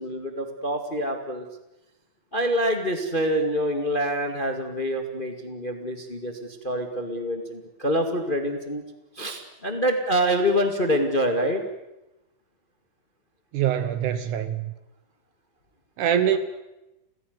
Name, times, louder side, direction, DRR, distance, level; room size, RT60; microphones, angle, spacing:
voice 1, 0.0-1.4 2.3-8.8 9.1-11.6 16.2-16.4, equal, 20° left, 1.5 m, -26 dB
voice 2, 13.5-14.7 16.0-16.4, right 10 dB, 70° right, 2.2 m, -24 dB
29.5 x 16.5 x 9.5 m
omnidirectional pair, 4.1 m